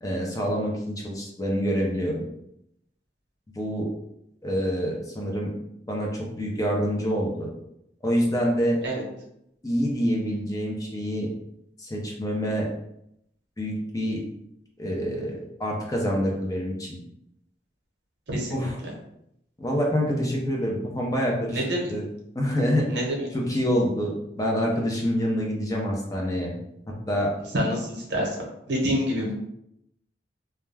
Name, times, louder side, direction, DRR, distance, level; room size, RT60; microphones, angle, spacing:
voice 1, 0.0-2.2 3.5-3.9 4.4-5.5 5.9-7.5 8.0-8.8 9.6-11.3 11.8-12.7 13.6-14.2 14.8-17.0 18.5-18.8 19.6-22.0 22.4-23.1 23.3-26.5 27.1-27.3 28.1-28.3, equal, 20° left, -2 dB, 0.5 m, -26 dB
voice 2, 18.3-18.9 21.5-21.9 22.9-23.2 27.5-28.4 28.7-29.3, equal, 75° right, -1 dB, 0.8 m, -27 dB
2.3 x 2.1 x 3.3 m, 0.78 s
head